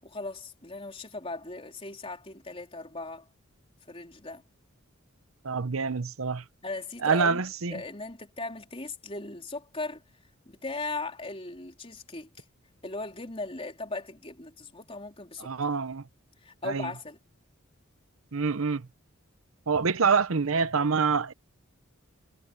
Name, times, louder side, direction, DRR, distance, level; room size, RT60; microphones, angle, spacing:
voice 1, 0.0-3.3 3.9-4.4 6.6-7.4 7.7-10.0 10.5-12.4 12.8-15.5 16.4-17.2, left 3 dB, 25° left, 3.7 m, -38 dB
voice 2, 5.4-6.4 7.0-7.8 15.4-16.0 16.6-16.9 18.3-18.9 19.7-21.3, right 5 dB, 80° right, 0.8 m, -26 dB
head